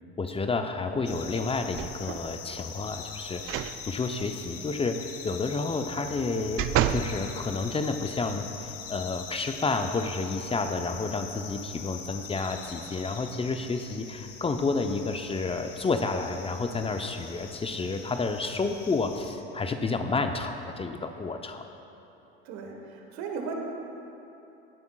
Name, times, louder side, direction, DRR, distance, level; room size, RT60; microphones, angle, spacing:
voice 1, 0.2-21.6, left 3 dB, 20° left, 6 dB, 0.6 m, -30 dB
sound 1, 1.0-19.4, left 6 dB, 50° left, 1.3 m, -43 dB
sound 2, 1.7-2.3 3.4-3.8 4.2-4.3 5.9-7.1 7.7-7.8, right 11 dB, 45° right, 0.5 m, -29 dB
voice 2, 22.4-23.5, right 5 dB, 60° right, 2 dB, 1.4 m, -36 dB
16.5 x 10.5 x 2.3 m, 3.0 s
hypercardioid pair, 70°, 30 cm